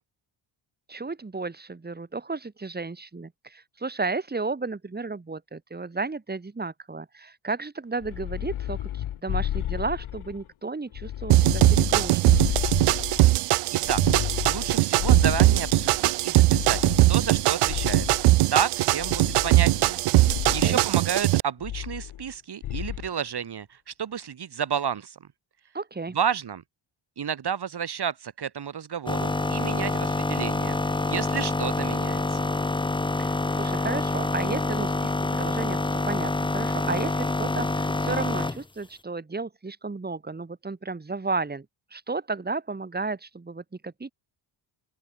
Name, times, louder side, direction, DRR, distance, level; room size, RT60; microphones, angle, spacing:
voice 1, 0.9-12.5 20.4-20.8 25.7-26.2 33.2-41.7 41.9-44.1, right 3 dB, 20° right, 4.1 m, -33 dB
sound 1, 8.0-10.4 10.9-13.4 13.8-16.0 16.5-18.4 19.0-20.0 20.2-20.7 21.6-22.3 22.6-23.1, left 12 dB, 80° left, 1.9 m, -32 dB
sound 2, 11.3-21.4, right 18 dB, 80° right, 0.6 m, -21 dB
voice 2, 13.7-14.0 14.5-16.8 17.1-18.1 18.5-20.0 20.5-25.2 26.1-26.6 27.2-32.4, right 8 dB, 50° right, 3.7 m, -31 dB
sound 3, 29.1-38.6, left 2 dB, 10° left, 0.7 m, -27 dB
open air
wide cardioid pair, 160°, 50 cm